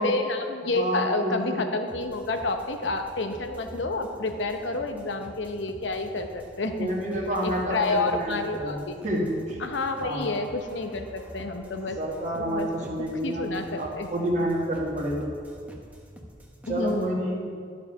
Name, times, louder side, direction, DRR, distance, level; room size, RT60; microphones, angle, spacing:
voice 1, 0.0-6.9 7.4-8.9 9.6-12.0 12.4-12.7 13.2-14.1 16.7-17.3, left 3 dB, 75° left, 6 dB, 0.8 m, -29 dB
voice 2, 0.7-1.6 6.8-8.8 9.0-9.6 10.0-10.3 12.0-15.3 16.7-17.5, equal, 40° right, -3 dB, 1.6 m, -29 dB
sound 1, 1.9-17.1, equal, 10° right, 0.9 m, -46 dB
13.0 x 4.8 x 5.9 m, 2.1 s
head